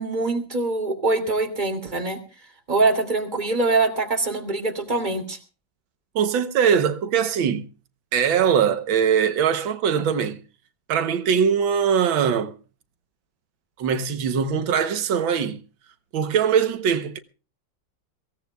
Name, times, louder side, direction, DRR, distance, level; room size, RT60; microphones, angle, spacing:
voice 1, 0.0-2.2 2.7-5.4, right 3 dB, 25° right, 2.7 m, -23 dB
voice 2, 6.2-7.7 8.1-10.4 10.9-12.5 13.8-15.6 16.1-17.2, right 7 dB, 90° right, 1.8 m, -21 dB
23.0 x 17.0 x 2.3 m
omnidirectional pair, 2.1 m